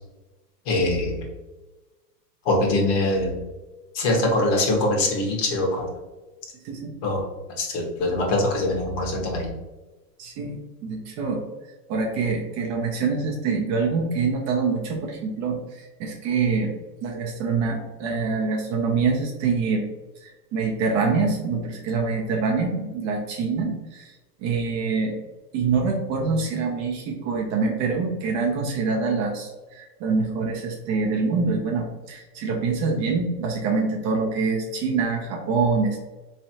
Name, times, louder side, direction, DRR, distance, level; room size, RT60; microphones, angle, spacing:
voice 1, 0.7-1.2 2.4-3.4 3.9-5.8 7.0-7.2 7.6-9.5, left 2 dB, 50° left, 0 dB, 1.3 m, -23 dB
voice 2, 10.2-11.4 11.9-16.7 17.0-19.8 20.2-24.1 24.4-25.1 25.5-36.0, right 4 dB, 35° right, 1 dB, 0.6 m, -25 dB
3.4 x 3.2 x 2.8 m, 1.1 s
hypercardioid pair, 120°, 49 cm